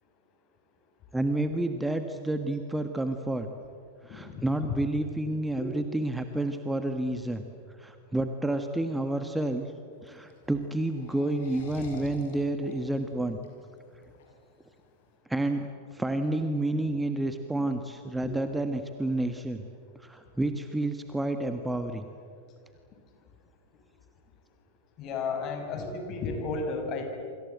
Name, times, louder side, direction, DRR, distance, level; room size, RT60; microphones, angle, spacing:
voice 1, 1.1-3.5 4.0-7.4 7.8-9.7 10.0-13.4 15.3-19.6 20.0-22.1, right 1 dB, 5° right, 7 dB, 1.5 m, -30 dB
voice 2, 4.1-4.5 5.6-5.7 18.2-18.3 25.0-27.0, left 4 dB, 35° left, 4 dB, 5.6 m, -33 dB
sound 1, 9.9-15.1, left 5 dB, 55° left, 6.7 m, -48 dB
28.0 x 25.5 x 8.0 m, 2.3 s
figure-of-eight pair, 90°, 0 cm